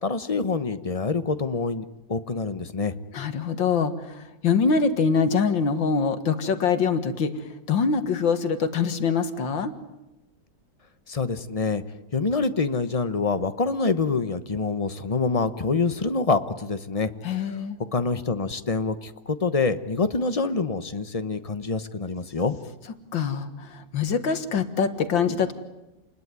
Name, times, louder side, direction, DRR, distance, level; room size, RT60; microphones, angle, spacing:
voice 1, 0.0-2.9 11.1-11.8 12.1-17.1 17.4-17.5 17.9-22.6, left 4 dB, 30° left, 11 dB, 0.7 m, -26 dB
voice 2, 3.1-9.7 17.2-17.8 23.1-25.5, left 5 dB, 75° left, 10 dB, 2.3 m, -24 dB
29.0 x 20.5 x 9.6 m, 0.96 s
omnidirectional pair, 2.1 m